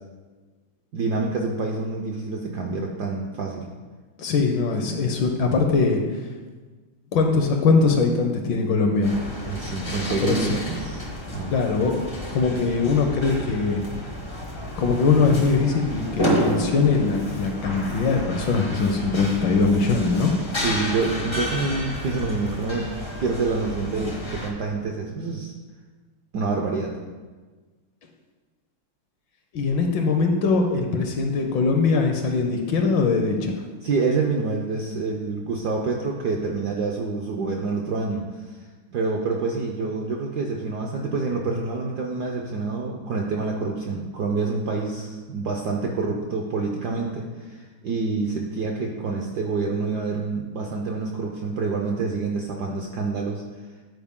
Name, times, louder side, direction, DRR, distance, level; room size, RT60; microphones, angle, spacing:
voice 1, 0.9-3.7 9.5-11.6 20.6-25.5 26.3-26.9 33.8-38.2 38.9-53.4, right 4 dB, 70° right, 0 dB, 0.9 m, -27 dB
voice 2, 4.2-6.3 7.1-9.2 10.1-10.5 11.5-11.9 12.3-13.8 14.7-20.3 29.5-33.7, left 4 dB, 70° left, 3 dB, 1.2 m, -21 dB
sound 1, 9.0-24.5, equal, 50° left, 0.3 m, -31 dB
9.5 x 4.5 x 3.6 m, 1.4 s
omnidirectional pair, 2.4 m